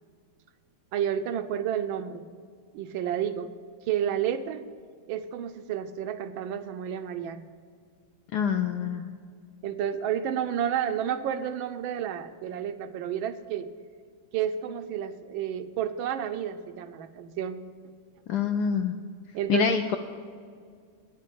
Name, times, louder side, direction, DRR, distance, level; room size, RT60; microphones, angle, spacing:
voice 1, 0.9-2.2 2.7-3.5 3.9-4.6 5.1-7.5 9.6-13.7 14.3-17.6 19.3-19.8, right 9 dB, 75° right, 10 dB, 1.4 m, -30 dB
voice 2, 8.3-9.1 18.3-19.0 19.5-20.0, left 7 dB, 75° left, 6 dB, 0.9 m, -26 dB
9.1 x 7.5 x 7.8 m, 2.1 s
omnidirectional pair, 2.2 m